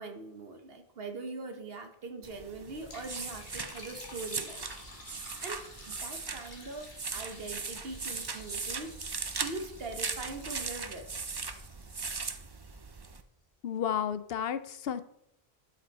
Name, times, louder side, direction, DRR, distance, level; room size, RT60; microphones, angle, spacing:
voice 1, 0.0-4.7 5.4-11.1, right 3 dB, 65° right, 5 dB, 1.3 m, -42 dB
sound 1, 2.2-13.2, right 4 dB, 30° right, 0.5 m, -39 dB
Liquid, 2.7-12.9, left 2 dB, 50° left, 1.9 m, -51 dB
voice 2, 13.6-15.0, left 9 dB, 70° left, 12 dB, 0.8 m, -32 dB
12.0 x 5.2 x 4.0 m, 0.79 s
omnidirectional pair, 1.1 m